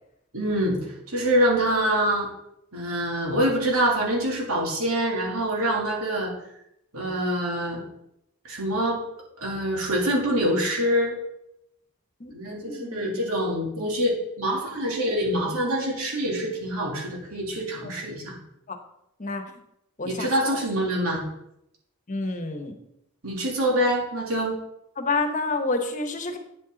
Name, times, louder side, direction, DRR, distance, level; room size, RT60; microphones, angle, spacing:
voice 1, 0.3-2.3 2.7-6.3 6.9-7.8 8.4-9.0 9.4-11.2 12.3-18.4 20.0-21.2 23.2-24.6, equal, 80° right, -2 dB, 3.1 m, -25 dB
voice 2, 12.6-13.3 17.8-17.9 18.7-18.8 19.2-19.6 20.0-20.6 22.1-22.8 25.0-26.4, left 3 dB, 35° left, 5 dB, 1.1 m, -29 dB
9.2 x 8.6 x 4.0 m, 0.79 s
head